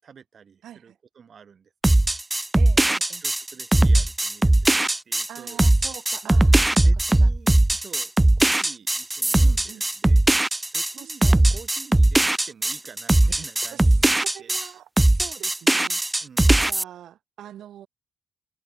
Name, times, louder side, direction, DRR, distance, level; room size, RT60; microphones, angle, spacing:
voice 1, 0.0-1.7 3.2-5.6 6.2-6.5 6.8-10.2 10.7-14.6 16.2-16.6, right 7 dB, 55° right, 5.5 m, -47 dB
voice 2, 0.6-1.0 2.6-3.2 5.3-7.3 9.4-9.8 10.9-11.5 13.7-14.0 14.2-16.0 16.6-17.9, right 11 dB, 75° right, 2.9 m, -43 dB
sound 1, 1.8-14.7 15.0-16.8, right 1 dB, 15° right, 0.6 m, -19 dB
supercardioid pair, 55°, 0 cm